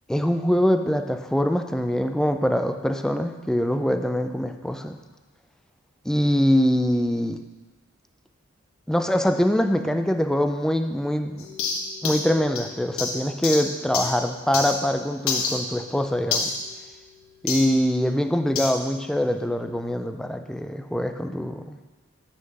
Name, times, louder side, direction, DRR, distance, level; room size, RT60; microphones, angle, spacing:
voice 1, 0.1-5.0 6.1-7.4 8.9-11.5 12.0-16.5 17.4-21.8, equal, 5° left, 7 dB, 0.3 m, -23 dB
sound 1, 11.4-14.9 15.3-17.7 18.6-18.8, left 4 dB, 75° left, 1.0 m, -30 dB
8.1 x 6.4 x 3.6 m, 1.2 s
head